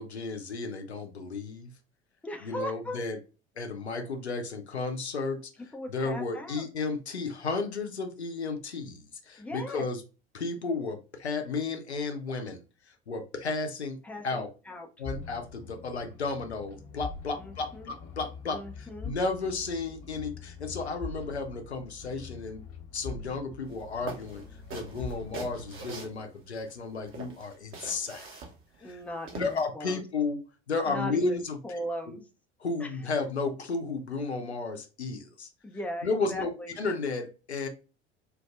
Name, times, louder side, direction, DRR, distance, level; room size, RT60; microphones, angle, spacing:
voice 1, 0.0-1.7 2.4-3.2 3.6-5.4 5.9-10.0 10.3-12.6 13.1-14.0 14.2-14.5 15.0-22.6 22.9-24.4 24.7-28.3 28.8-29.0 29.4-30.4 30.7-31.8 32.1-32.2 32.6-35.5 36.0-37.7, left 3 dB, 85° left, 5 dB, 0.6 m, -33 dB
voice 2, 2.2-3.0 5.7-6.7 9.4-9.8 14.0-14.9 17.4-17.9 18.5-19.2 28.8-30.0 30.9-32.3 32.8-33.0 35.6-36.8, left 1 dB, 5° left, 2 dB, 0.6 m, -38 dB
sound 1, 15.0-26.0, left 5 dB, 45° left, 1.1 m, -44 dB
sound 2, 23.7-23.8 24.1-26.7 27.1-29.6, right 3 dB, 40° right, 1.0 m, -43 dB
4.5 x 2.5 x 2.4 m, 0.33 s
figure-of-eight pair, 65°, 32 cm